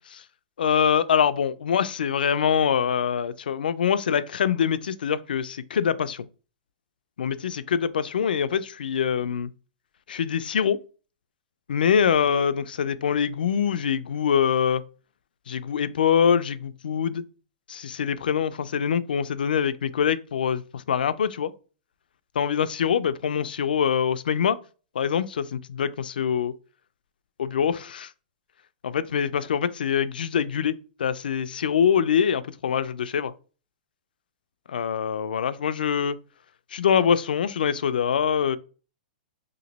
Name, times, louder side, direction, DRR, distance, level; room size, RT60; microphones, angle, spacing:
voice 1, 0.6-6.3 7.2-9.5 10.1-10.8 11.7-14.8 15.5-17.2 17.7-21.5 22.4-24.6 24.9-26.5 27.5-28.1 28.8-33.3 34.7-36.2 36.7-38.6, left 7 dB, 90° left, 0.3 m, -24 dB
3.0 x 2.5 x 4.0 m
hypercardioid pair, 140°, 5 cm